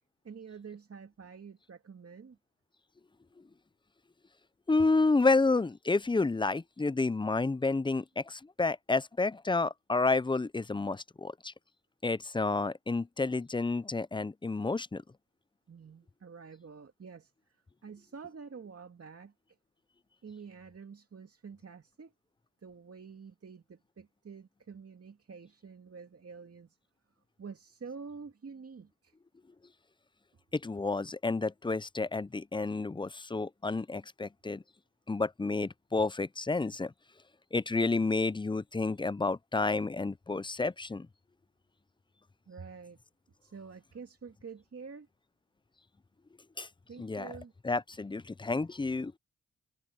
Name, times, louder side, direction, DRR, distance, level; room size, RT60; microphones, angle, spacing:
voice 1, 0.2-2.4 15.7-19.3 20.2-22.1 22.6-26.8 27.4-29.1 42.5-43.0 43.4-45.1 46.9-47.5, right 5 dB, 50° right, 2.5 m, -48 dB
voice 2, 4.7-11.5 12.0-15.0 30.5-34.6 35.1-36.9 37.5-41.1 46.6-46.7 47.0-47.3 47.6-49.1, left 3 dB, 15° left, 0.5 m, -30 dB
cardioid pair, 60°, 31 cm